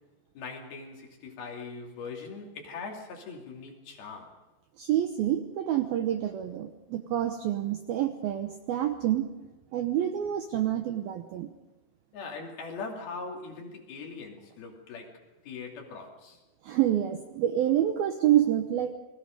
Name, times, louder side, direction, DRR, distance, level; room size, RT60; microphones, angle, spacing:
voice 1, 0.3-4.4 12.1-16.4, left 4 dB, 55° left, 4.4 m, -41 dB
voice 2, 4.8-9.3 9.7-11.5 16.6-18.9, right 11 dB, 75° right, 2.3 m, -27 dB
29.5 x 21.5 x 5.2 m
omnidirectional pair, 5.5 m